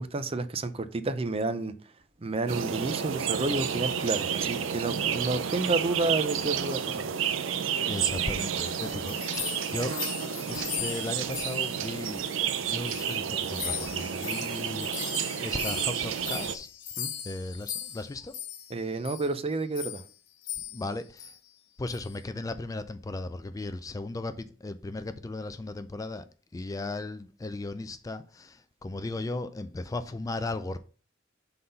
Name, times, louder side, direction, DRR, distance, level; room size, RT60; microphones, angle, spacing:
voice 1, 0.0-1.7 2.2-7.1 17.0-17.1 18.7-20.0, right 3 dB, 30° right, 0.5 m, -30 dB
sound 1, 2.5-16.5, right 8 dB, 80° right, 0.5 m, -31 dB
voice 2, 7.9-10.0 10.5-16.7 17.2-18.4 20.7-21.3 21.8-26.3 26.5-30.8, left 2 dB, 20° left, 0.3 m, -36 dB
sound 2, 8.3-12.5 12.8-18.7 19.0-19.3 19.7-20.1 20.4-20.9 21.2-21.4 21.9-22.2, left 10 dB, 75° left, 1.0 m, -39 dB
5.7 x 3.9 x 5.4 m
head